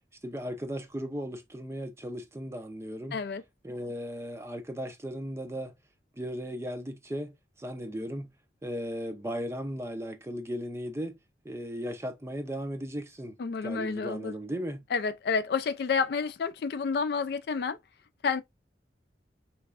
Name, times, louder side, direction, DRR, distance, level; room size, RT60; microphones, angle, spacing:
voice 1, 0.2-3.2 3.6-5.7 6.1-8.3 8.6-11.2 11.4-13.4 13.6-14.8, equal, 15° right, 0.4 m, -36 dB
voice 2, 3.1-3.4 13.4-14.3 14.9-17.8 18.2-18.4, left 5 dB, 55° left, 0.3 m, -29 dB
3.4 x 3.1 x 2.3 m
head